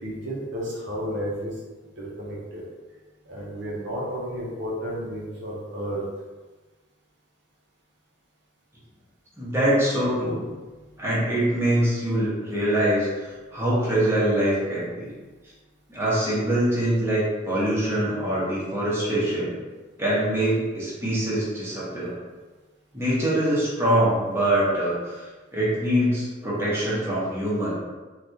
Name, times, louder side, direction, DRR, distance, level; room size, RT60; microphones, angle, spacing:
voice 1, 0.0-1.5 2.0-2.6 3.3-6.0, equal, 60° right, -5 dB, 0.7 m, -32 dB
voice 2, 9.4-10.4 11.0-15.1 15.9-19.5 20.0-22.1 22.9-25.3 25.5-27.7, right 1 dB, 15° right, -9 dB, 0.9 m, -24 dB
3.3 x 2.3 x 2.7 m, 1.3 s
head